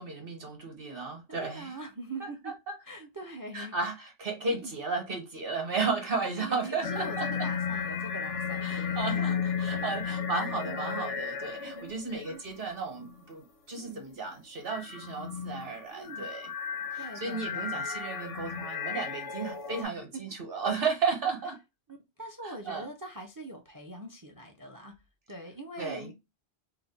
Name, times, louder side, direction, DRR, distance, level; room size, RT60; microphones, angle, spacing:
voice 1, 0.0-1.7 2.7-2.8 3.5-3.9 4.2-7.3 8.6-16.5 16.9-21.6 22.4-22.9 25.8-26.1, right 4 dB, 55° right, 1.0 m, -34 dB
voice 2, 1.3-2.5 2.8-3.8 4.5-4.7 6.4-9.3 9.7-10.3 10.6-10.9 11.6-12.4 13.7-14.0 15.9-16.3 17.0-17.8 19.8-20.2 21.9-25.0 25.3-26.1, right 1 dB, 30° right, 0.3 m, -43 dB
sound 1, 6.8-11.9 12.3-13.2 14.7-19.8, left 6 dB, 85° left, 1.1 m, -34 dB
2.9 x 2.1 x 3.9 m
omnidirectional pair, 1.2 m